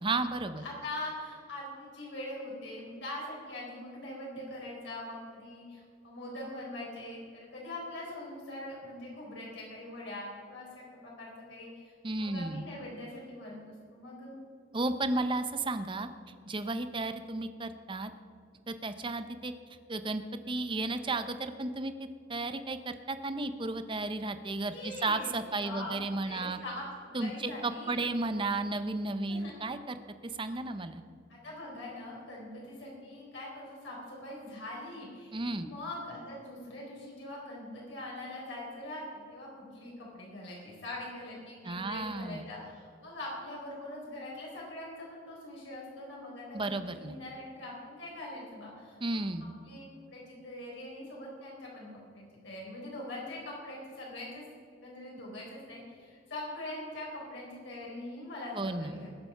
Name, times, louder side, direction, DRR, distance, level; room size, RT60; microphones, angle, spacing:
voice 1, 0.0-0.6 12.0-12.6 14.7-16.1 16.5-18.1 18.7-19.5 19.9-21.9 22.3-26.6 27.1-30.0 30.4-31.0 35.3-35.7 41.6-42.5 46.5-47.1 49.0-49.5 58.6-59.0, right 2 dB, 25° right, 10 dB, 0.7 m, -33 dB
voice 2, 0.6-11.9 12.2-14.4 24.7-28.0 29.3-29.5 31.3-49.2 49.6-49.9 50.1-54.4 54.8-59.1, left 1 dB, 75° left, -4 dB, 4.2 m, -43 dB
20.0 x 6.8 x 5.7 m, 2.3 s
head